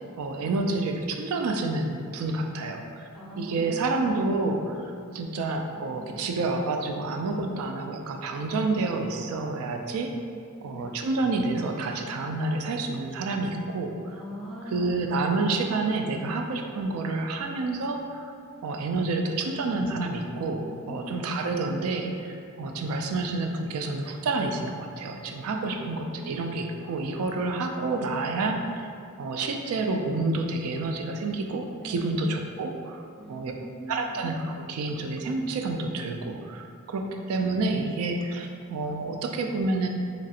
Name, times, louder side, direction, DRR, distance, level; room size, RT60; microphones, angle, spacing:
voice 1, 0.2-3.1 3.4-10.1 10.6-14.1 14.7-18.3 18.6-28.9 29.2-33.0 33.3-33.5 33.9-39.9, right 3 dB, 75° right, 4 dB, 0.3 m, -29 dB
voice 2, 3.1-3.8 4.3-4.4 4.8-5.0 5.7-6.2 7.3-7.5 10.3-10.7 14.1-14.9 20.6-21.2 25.5-26.3 31.8-32.2 33.2-34.3, equal, ahead, -6 dB, 0.5 m, -41 dB
3.1 x 2.8 x 2.4 m, 2.4 s
head